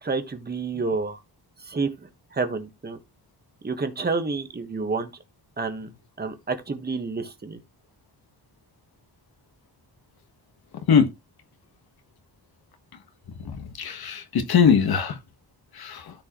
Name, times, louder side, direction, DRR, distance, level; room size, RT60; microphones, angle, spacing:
voice 1, 0.0-1.2 1.6-3.0 3.6-5.1 5.6-5.9 6.2-7.6, right 4 dB, 25° right, 1.4 m, -29 dB
voice 2, 13.4-15.2 15.8-16.0, left 6 dB, 65° left, 1.4 m, -21 dB
13.5 x 4.6 x 3.0 m
wide cardioid pair, 160°, 40 cm